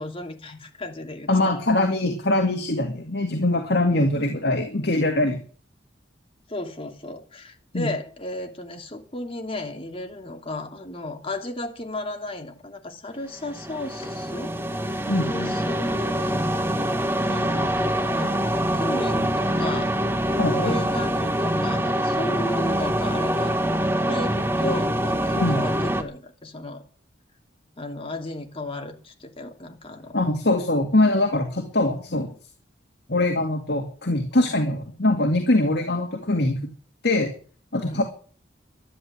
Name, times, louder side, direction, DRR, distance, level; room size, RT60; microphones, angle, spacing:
voice 1, 0.0-1.5 6.5-14.5 15.3-16.4 17.2-18.4 18.7-20.0 20.5-23.6 24.1-26.8 27.8-30.2 34.3-34.5 37.7-38.0, left 1 dB, 30° left, 4 dB, 2.7 m, -34 dB
voice 2, 1.3-5.4 7.7-7.9 15.1-15.5 20.4-20.7 25.3-25.6 30.1-32.3 33.1-36.6 37.0-37.3 37.7-38.0, left 2 dB, 60° left, 4 dB, 2.2 m, -22 dB
sound 1, 13.4-26.0, right 1 dB, 10° right, 1.3 m, -24 dB
12.0 x 11.5 x 7.8 m, 0.41 s
head